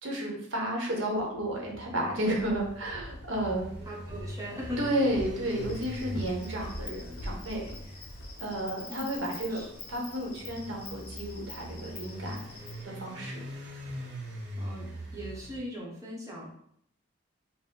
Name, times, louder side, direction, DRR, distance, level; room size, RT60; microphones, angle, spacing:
voice 1, 0.0-3.7 4.8-7.8 8.4-9.6 9.9-12.4 12.8-13.4, right 1 dB, 90° right, -1 dB, 1.1 m, -32 dB
sound 1, 1.2-15.6, right 1 dB, 60° right, 0.7 m, -43 dB
Walk footsteps, 2.3-8.4, left 1 dB, 85° left, 0.6 m, -44 dB
voice 2, 3.8-4.8 8.9-9.0 9.4-9.7 14.6-16.5, equal, 15° right, -4 dB, 1.0 m, -39 dB
Insect, 5.4-12.8, left 4 dB, 50° left, 0.8 m, -47 dB
4.1 x 2.2 x 3.7 m, 0.69 s
head